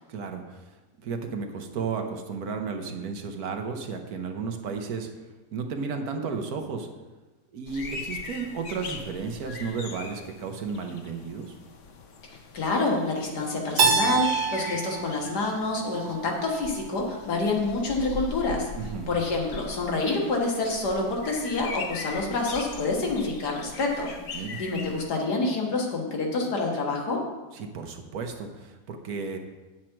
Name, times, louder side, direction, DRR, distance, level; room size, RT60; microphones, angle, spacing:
voice 1, 0.1-0.6 1.0-5.1 5.5-6.9 7.5-11.6 18.7-19.1 24.3-24.6 27.5-29.4, right 5 dB, 65° right, 5 dB, 1.3 m, -33 dB
sound 1, 7.7-25.1, left 4 dB, 55° left, 1.0 m, -41 dB
voice 2, 12.2-18.7 19.1-27.2, left 3 dB, 75° left, 0 dB, 2.1 m, -28 dB
Keyboard (musical), 13.8-16.6, right 5 dB, 90° right, 1.6 m, -26 dB
8.9 x 7.4 x 4.5 m, 1.2 s
omnidirectional pair, 1.8 m